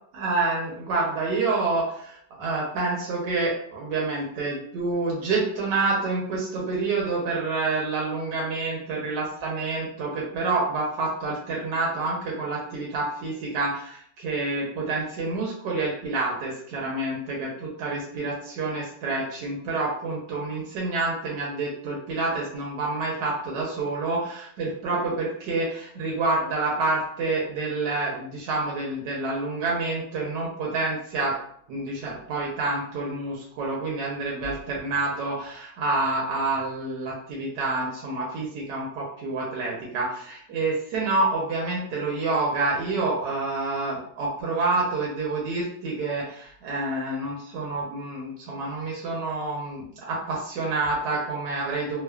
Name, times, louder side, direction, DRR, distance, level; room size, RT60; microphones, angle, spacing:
voice 1, 0.1-31.4 31.7-52.0, right 3 dB, 80° right, -4 dB, 1.3 m, -28 dB
3.2 x 2.0 x 2.2 m, 0.63 s
omnidirectional pair, 1.8 m